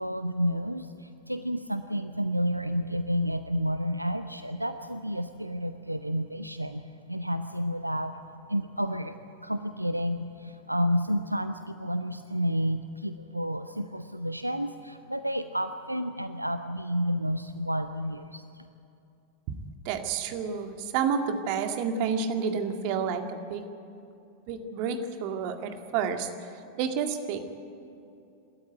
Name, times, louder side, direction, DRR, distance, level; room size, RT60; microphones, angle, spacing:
voice 1, 0.0-6.8 7.1-18.6, equal, 85° right, 10 dB, 0.6 m, -30 dB
voice 2, 19.8-23.6 24.5-27.5, right 6 dB, 45° right, 6 dB, 2.0 m, -30 dB
27.0 x 13.0 x 9.3 m, 2.7 s
figure-of-eight pair, 90°, 0 cm